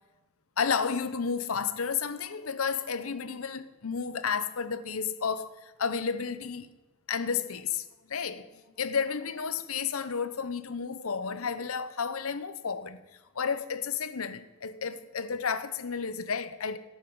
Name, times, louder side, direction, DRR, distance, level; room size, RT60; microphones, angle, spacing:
voice 1, 0.6-6.7 7.1-13.0 13.3-16.8, left 6 dB, 90° left, 0.8 m, -32 dB
17.0 x 9.2 x 4.7 m
head